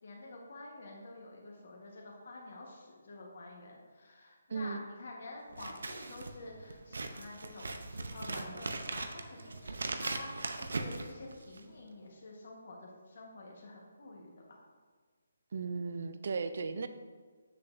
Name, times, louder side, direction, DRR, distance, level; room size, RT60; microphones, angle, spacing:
voice 1, 0.0-10.3 10.6-14.6, left 2 dB, 50° left, -2 dB, 1.3 m, -49 dB
voice 2, 4.5-4.8 15.5-16.9, right 4 dB, 45° right, 10 dB, 0.4 m, -36 dB
Scissors, 5.5-11.7, right 3 dB, 85° right, 0.7 m, -40 dB
8.0 x 6.6 x 2.7 m, 1.5 s
hypercardioid pair, 175°, 0 cm